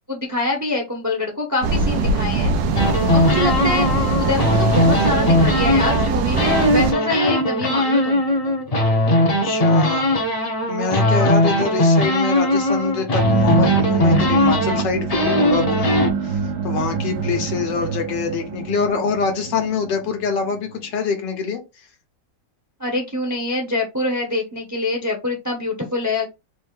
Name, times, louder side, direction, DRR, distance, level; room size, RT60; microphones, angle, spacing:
voice 1, 0.1-2.5 3.1-8.2 11.0-11.4 22.8-26.3, left 2 dB, 15° right, 0.6 m, -25 dB
sound 1, 1.6-6.9, right 4 dB, 85° right, 1.4 m, -21 dB
sound 2, 2.7-6.1 6.4-16.1, left 1 dB, 35° left, 0.6 m, -19 dB
voice 2, 9.4-10.1 10.7-16.4 16.6-21.6, left 5 dB, 80° left, 1.7 m, -25 dB
sound 3, 13.1-20.9, right 6 dB, 70° right, 1.1 m, -26 dB
4.2 x 2.6 x 3.6 m
omnidirectional pair, 1.9 m